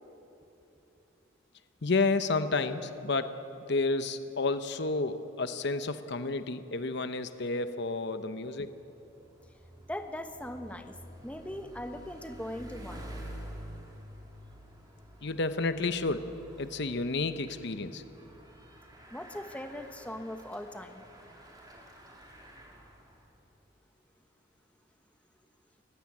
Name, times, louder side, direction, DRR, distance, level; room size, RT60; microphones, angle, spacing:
voice 1, 1.8-3.4 3.7-8.8 15.2-18.0, left 3 dB, 60° left, 10 dB, 0.9 m, -31 dB
Bicycle, 8.7-23.4, equal, 20° right, 3.1 m, -49 dB
voice 2, 9.9-11.0 11.2-13.1 19.1-21.0, left 1 dB, 5° left, 6 dB, 1.2 m, -40 dB
29.0 x 15.5 x 8.7 m, 3.0 s
head